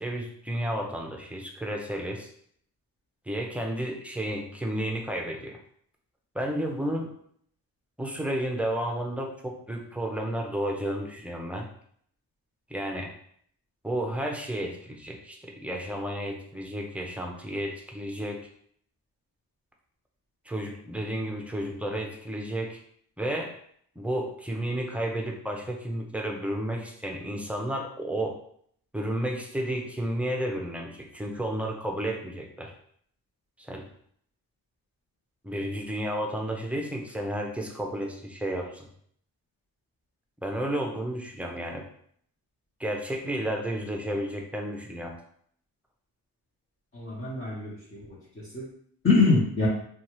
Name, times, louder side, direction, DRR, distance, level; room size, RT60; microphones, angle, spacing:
voice 1, 0.0-2.3 3.3-5.6 6.3-7.1 8.0-11.7 12.7-13.1 13.8-18.5 20.5-22.8 23.2-23.5 24.0-28.4 28.9-32.7 33.6-33.9 35.4-38.9 40.4-41.8 42.8-45.2, right 1 dB, 5° right, 1 dB, 0.5 m, -32 dB
voice 2, 46.9-48.2 48.5-48.6 49.0-49.7, left 3 dB, 30° left, -8 dB, 1.0 m, -24 dB
2.7 x 2.3 x 3.0 m, 0.64 s
cardioid pair, 70°, 40 cm